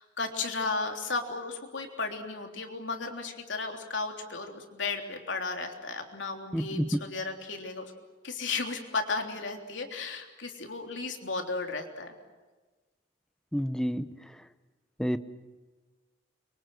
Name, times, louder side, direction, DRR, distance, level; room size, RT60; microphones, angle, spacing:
voice 1, 0.0-7.9 8.2-12.1, left 4 dB, 75° left, 3 dB, 3.4 m, -34 dB
voice 2, 6.5-6.8 13.5-14.0 15.0-15.2, equal, 5° left, 11 dB, 0.9 m, -28 dB
29.5 x 24.0 x 7.7 m, 1.3 s
head